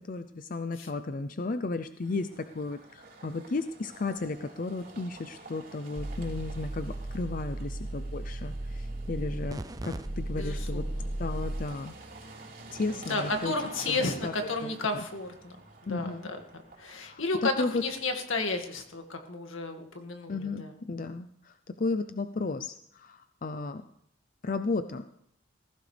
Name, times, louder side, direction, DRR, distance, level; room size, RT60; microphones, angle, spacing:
voice 1, 0.0-10.9 11.2-11.9 12.7-13.5 13.9-14.7 15.9-16.3 17.0-17.2 17.6-17.8 20.3-23.9 24.4-25.0, left 3 dB, 40° left, 10 dB, 0.5 m, -34 dB
sound 1, 2.0-19.0, right 2 dB, 45° right, 3.5 m, -50 dB
sound 2, 6.0-11.7, right 1 dB, 20° right, 0.5 m, -35 dB
voice 2, 10.3-11.1 12.9-15.6 15.9-16.4 16.8-20.7, left 3 dB, 80° left, 4 dB, 2.1 m, -33 dB
19.5 x 15.5 x 3.4 m, 0.73 s
head